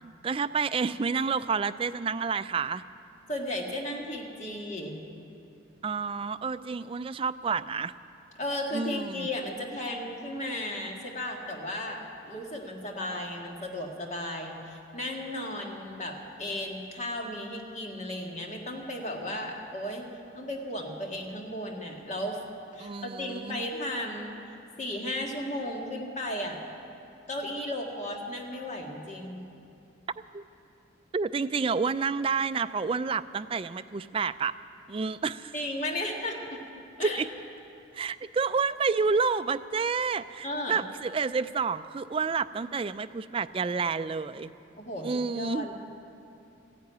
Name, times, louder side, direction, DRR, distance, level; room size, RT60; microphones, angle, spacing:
voice 1, 0.0-2.8 5.8-7.9 8.7-9.3 22.8-23.7 30.3-30.4 31.1-34.5 34.9-35.5 37.0-37.3 37.9-44.5 45.0-45.7, right 5 dB, 30° right, 12 dB, 0.3 m, -29 dB
voice 2, 3.3-5.0 8.4-20.1 20.3-22.4 22.7-24.4 24.8-26.6 27.3-29.4 35.5-36.6 37.0-37.2 40.4-40.8 44.8-45.7, left 1 dB, 35° left, 1 dB, 1.8 m, -35 dB
14.5 x 10.5 x 9.4 m, 2.7 s
head